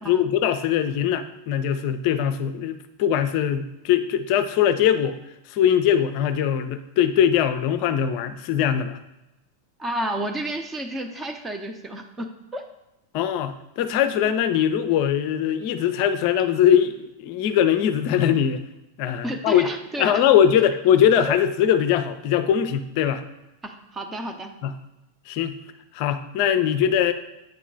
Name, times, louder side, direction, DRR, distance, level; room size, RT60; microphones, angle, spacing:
voice 1, 0.0-5.2 5.5-9.0 13.1-18.6 19.0-19.7 20.0-23.2 24.6-24.7 25.3-25.6 25.9-27.1, left 9 dB, 45° left, 10 dB, 0.5 m, -21 dB
voice 2, 9.8-12.6 19.2-20.2 21.2-21.4 23.6-24.5, right 1 dB, 15° right, 5 dB, 0.7 m, -31 dB
8.8 x 3.0 x 3.8 m, 0.94 s
figure-of-eight pair, 90°, 0 cm